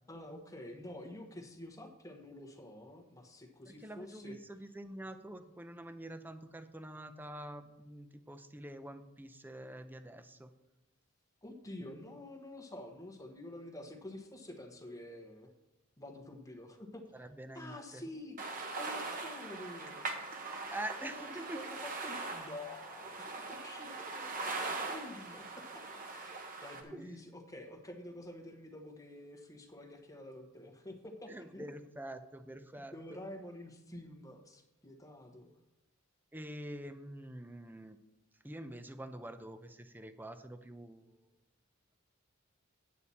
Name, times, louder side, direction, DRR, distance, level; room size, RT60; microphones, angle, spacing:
voice 1, 0.1-4.4 11.4-15.5 16.0-17.2 17.5-20.0 21.0-31.7 32.8-35.5, left 1 dB, 15° left, 4 dB, 1.1 m, -49 dB
voice 2, 3.7-10.5 17.1-18.0 20.7-21.6 26.9-27.1 31.3-33.2 36.3-38.0 38.4-41.3, right 1 dB, 10° right, 9 dB, 0.6 m, -46 dB
sound 1, 18.4-26.8, right 3 dB, 40° right, 1.2 m, -41 dB
9.0 x 8.5 x 4.2 m, 0.99 s
head